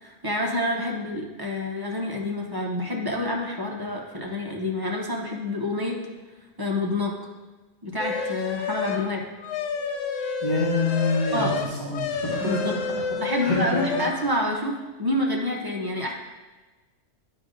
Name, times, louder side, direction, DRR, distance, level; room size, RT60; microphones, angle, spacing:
voice 1, 0.0-6.0 6.6-7.1 7.8-9.2 11.3-11.6 12.4-12.7 13.2-16.1, left 1 dB, 25° right, -1 dB, 0.6 m, -28 dB
sound 1, 8.0-9.1 9.4-14.2, left 5 dB, 80° left, 0.9 m, -29 dB
voice 2, 10.4-12.6 13.4-13.8, left 2 dB, 35° left, -10 dB, 2.2 m, -26 dB
9.6 x 5.2 x 2.5 m, 1.2 s
omnidirectional pair, 1.3 m